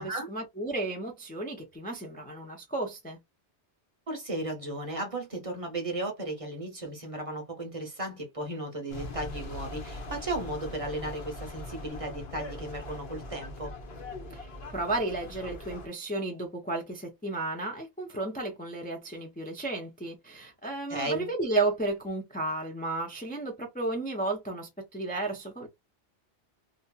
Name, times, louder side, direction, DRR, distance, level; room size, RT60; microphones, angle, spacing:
voice 1, 0.0-3.2 14.3-14.5 14.7-25.7, right 2 dB, 10° left, 0.4 m, -33 dB
voice 2, 4.1-13.7 20.9-21.3, right 1 dB, 35° right, 0.8 m, -35 dB
sound 1, 8.9-15.9, left 1 dB, 65° left, 1.0 m, -41 dB
2.7 x 2.5 x 2.2 m
omnidirectional pair, 1.2 m